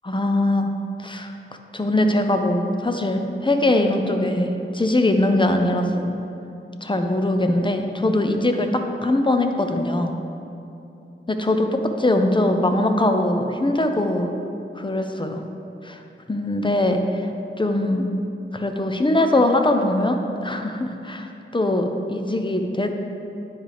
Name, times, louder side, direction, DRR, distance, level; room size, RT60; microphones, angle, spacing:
voice 1, 0.0-0.7 1.0-1.3 1.7-6.1 6.8-10.1 11.3-14.3 14.8-15.5 15.8-16.0 16.3-17.0 17.6-18.1 18.5-22.9, left 1 dB, 25° left, 5 dB, 0.6 m, -21 dB
9.8 x 4.9 x 3.4 m, 2.8 s
wide cardioid pair, 45°, 21 cm